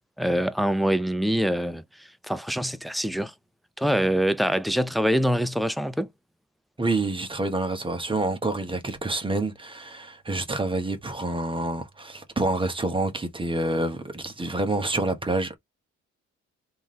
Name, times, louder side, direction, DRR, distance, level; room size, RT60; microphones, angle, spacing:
voice 1, 0.2-1.8 2.3-3.3 3.8-6.1, equal, ahead, 0.5 m, -24 dB
voice 2, 6.8-15.6, right 2 dB, 15° right, 1.2 m, -27 dB
3.5 x 2.8 x 3.1 m
cardioid pair, 90°, 30 cm